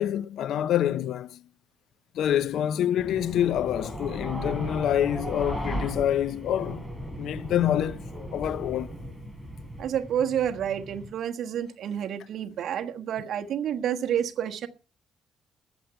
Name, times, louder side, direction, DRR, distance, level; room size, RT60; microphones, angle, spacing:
voice 1, 0.0-1.4 2.2-6.9 7.2-8.0 8.3-8.9, left 10 dB, 70° left, 0.6 m, -26 dB
sound 1, 3.0-11.1, equal, ahead, 5.0 m, -36 dB
voice 2, 9.8-14.7, right 9 dB, 65° right, 1.4 m, -29 dB
14.0 x 9.9 x 5.7 m
cardioid pair, 100°, 0 cm